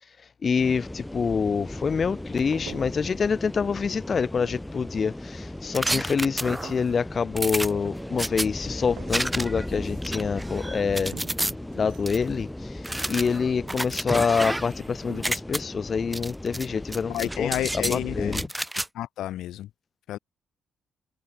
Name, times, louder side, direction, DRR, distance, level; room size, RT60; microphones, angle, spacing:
voice 1, 0.4-11.2 11.7-18.5, left 5 dB, 40° left, 1.4 m, -26 dB
sound 1, 0.6-18.5, left 1 dB, 10° left, 3.9 m, -37 dB
sound 2, 2.4-3.3 3.6-4.1 4.3-5.0 6.5-7.2 8.3-8.4 8.7-10.3 11.1-12.2 13.5-14.3 15.1-15.6, right 12 dB, 80° right, 2.4 m, -47 dB
sound 3, 5.7-6.8 7.4-8.5 9.1-9.7 10.0-11.5 12.1-12.2 12.8-14.8 15.1-15.6 16.1-16.7 16.9-18.0 18.3-18.9, right 1 dB, 5° right, 1.3 m, -30 dB
voice 2, 17.1-18.4 18.9-19.7 20.1-20.2, left 13 dB, 85° left, 2.1 m, -30 dB
cardioid pair, 105°, 0 cm